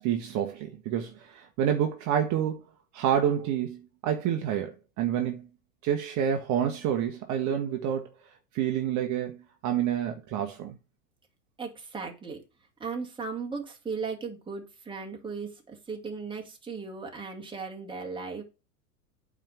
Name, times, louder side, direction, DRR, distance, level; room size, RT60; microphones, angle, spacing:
voice 1, 0.0-2.6 2.9-5.5 5.8-8.1 8.5-9.4 9.6-10.7, right 9 dB, 35° right, 1.3 m, -28 dB
voice 2, 11.6-12.4 12.8-18.4, right 5 dB, 10° right, 2.1 m, -37 dB
8.9 x 3.7 x 5.8 m
figure-of-eight pair, 95°, 47 cm